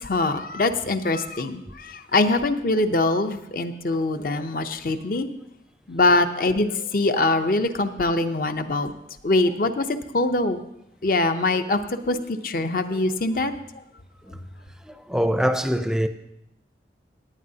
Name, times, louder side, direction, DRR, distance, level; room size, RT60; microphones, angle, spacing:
voice 1, 0.0-5.3 5.9-8.9 9.2-10.6 11.0-11.8 12.1-13.5, left 2 dB, 50° left, 0.6 m, -23 dB
voice 2, 14.9-16.1, equal, 5° right, 0.5 m, -24 dB
17.0 x 9.5 x 2.8 m
head